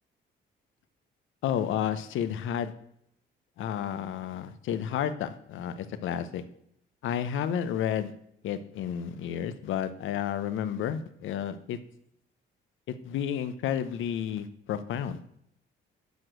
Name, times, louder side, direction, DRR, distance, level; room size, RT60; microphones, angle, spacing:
voice 1, 1.4-2.7 3.6-6.4 7.0-8.1 8.4-11.8 12.9-15.2, left 9 dB, 80° left, 12 dB, 0.8 m, -31 dB
7.3 x 6.1 x 7.7 m, 0.73 s
cardioid pair, 90°, 20 cm